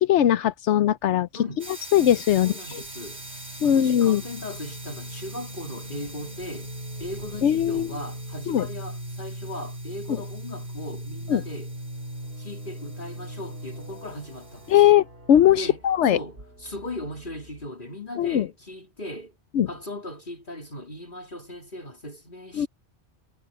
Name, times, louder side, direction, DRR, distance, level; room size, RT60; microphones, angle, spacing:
voice 1, 0.0-1.3 1.9-2.8 3.6-4.2 7.4-7.9 8.5-8.7 10.1-10.2 11.3-11.4 14.7-16.2 18.2-18.5 19.5-19.7 22.6-22.7, left 11 dB, 80° left, 0.9 m, -20 dB
sound 1, 1.6-2.1 2.8-17.7, equal, 55° right, 4.7 m, -40 dB
sound 2, 1.6-14.9, right 2 dB, 70° right, 7.4 m, -45 dB
voice 2, 2.4-6.7 7.0-11.7 12.4-14.8 15.6-15.8 16.0-19.4 19.7-22.7, left 1 dB, 45° left, 3.6 m, -38 dB
omnidirectional pair, 1.2 m